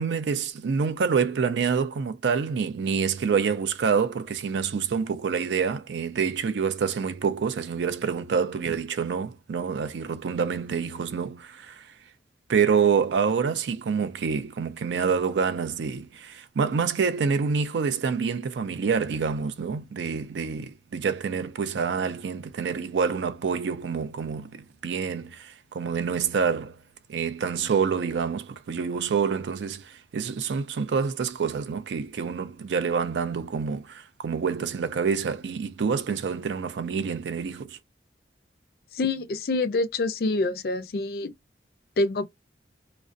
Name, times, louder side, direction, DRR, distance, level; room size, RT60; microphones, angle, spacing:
voice 1, 0.0-11.9 12.5-26.8 27.1-37.8, right 6 dB, 80° right, 0.4 m, -27 dB
voice 2, 38.9-41.3 42.0-42.3, left 2 dB, 55° left, 0.4 m, -26 dB
2.5 x 2.0 x 2.4 m
head